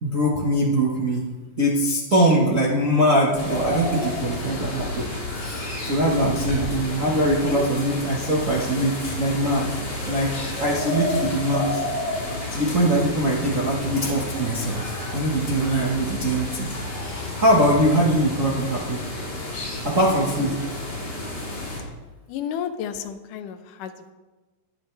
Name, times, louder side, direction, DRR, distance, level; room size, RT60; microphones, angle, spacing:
voice 1, 0.0-1.3 1.6-5.1 5.4-9.7 10.1-10.3 10.6-11.8 12.5-19.0 19.8-20.6, right 1 dB, 70° right, -5 dB, 0.7 m, -22 dB
sound 1, 3.4-21.8, left 2 dB, 60° left, 6.4 m, -30 dB
voice 2, 22.3-24.1, left 9 dB, 75° left, 8 dB, 2.1 m, -32 dB
21.5 x 8.2 x 3.4 m, 1.2 s
omnidirectional pair, 4.2 m